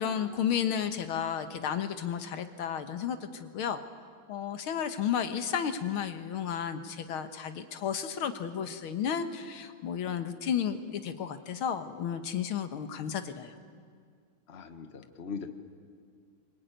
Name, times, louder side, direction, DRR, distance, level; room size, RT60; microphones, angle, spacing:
voice 1, 0.0-3.8 4.3-13.5, left 8 dB, 75° left, 9 dB, 2.1 m, -32 dB
voice 2, 14.5-15.5, left 5 dB, 35° left, 7 dB, 1.4 m, -40 dB
24.5 x 22.5 x 9.3 m, 2.1 s
omnidirectional pair, 2.4 m